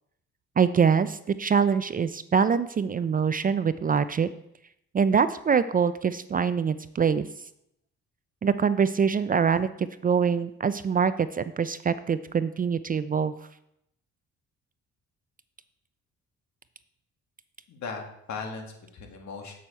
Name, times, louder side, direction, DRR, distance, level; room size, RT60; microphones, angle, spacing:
voice 1, 0.6-4.3 4.9-7.3 8.4-13.3, right 6 dB, 30° right, 13 dB, 0.4 m, -24 dB
voice 2, 17.7-19.5, left 4 dB, 65° left, 2 dB, 1.9 m, -38 dB
8.1 x 6.2 x 4.3 m, 0.77 s
cardioid pair, 90°, 30 cm